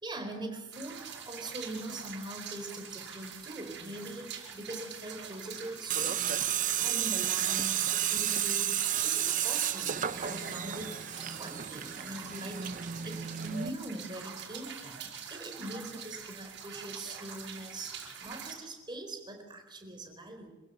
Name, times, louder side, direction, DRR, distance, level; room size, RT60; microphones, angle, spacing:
voice 1, 0.0-6.4 6.8-10.9 11.4-20.5, right 1 dB, 25° right, 4 dB, 4.3 m, -42 dB
sound 1, 0.7-18.5, right 7 dB, 60° right, 5.5 m, -45 dB
Tools, 5.9-13.7, right 10 dB, 40° right, 0.8 m, -32 dB
26.5 x 16.0 x 6.7 m, 1.2 s
head